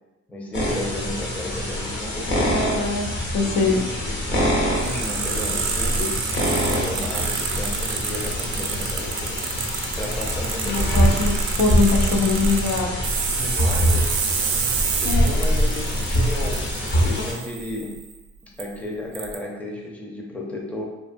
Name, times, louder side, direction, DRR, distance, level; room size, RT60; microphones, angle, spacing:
voice 1, 0.3-2.6 3.4-4.3 4.7-6.2 6.8-9.4 10.0-11.1 13.4-14.2 15.0-18.0 18.4-20.8, left 1 dB, 5° left, -2 dB, 0.5 m, -33 dB
sound 1, 0.5-17.3, equal, 40° left, 0.7 m, -24 dB
voice 2, 2.5-3.8 10.6-13.0 15.0-15.3, left 3 dB, 85° left, 2 dB, 0.5 m, -23 dB
sound 2, 4.7-18.1 18.6-18.7 19.1-19.3, right 6 dB, 85° right, 0.5 m, -29 dB
2.6 x 2.2 x 2.5 m, 1.0 s
cardioid pair, 90°, 30 cm